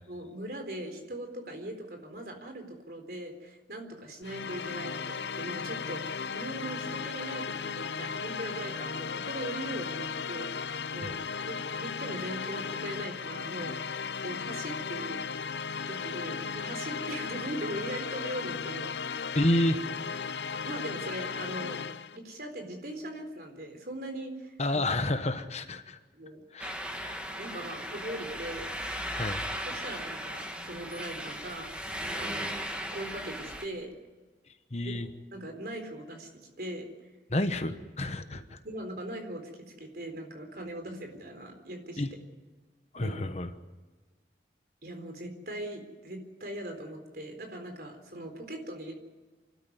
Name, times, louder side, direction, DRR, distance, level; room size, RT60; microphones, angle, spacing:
voice 1, 0.1-13.8 14.2-15.5 15.9-19.3 20.6-21.8 22.1-24.8 26.1-26.4 27.4-29.1 29.6-32.6 32.9-33.9 34.8-36.3 36.6-37.1 38.6-42.0 42.9-43.1 44.8-48.9, right 1 dB, 55° right, 5 dB, 4.0 m, -40 dB
sound 1, 4.2-22.2, left 5 dB, 75° left, 0.7 m, -36 dB
voice 2, 19.3-19.8 24.6-26.0 26.5-27.2 29.1-29.4 34.7-35.1 37.3-38.6 42.0-42.1 42.9-43.5, left 1 dB, 40° left, 9 dB, 1.1 m, -29 dB
sound 2, 26.6-33.6, equal, 5° right, 1.8 m, -37 dB
28.0 x 12.5 x 9.6 m, 1.3 s
head